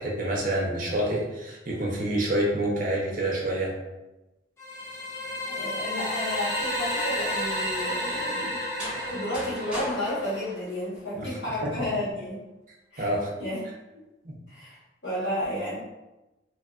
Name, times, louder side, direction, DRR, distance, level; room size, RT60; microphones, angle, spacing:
voice 1, 0.0-3.7 11.1-11.4 11.6-11.7 13.0-13.3 14.2-14.3, right 1 dB, 50° right, -1 dB, 0.6 m, -27 dB
sound 1, 4.6-10.5, left 1 dB, 15° left, 0.4 m, -31 dB
voice 2, 5.4-8.6 9.1-12.5 12.9-13.1 13.4-13.6 14.5-15.8, left 1 dB, 80° left, -10 dB, 1.3 m, -32 dB
sound 2, 8.6-11.5, equal, 5° right, 0.9 m, -40 dB
2.9 x 2.3 x 2.3 m, 1.0 s
head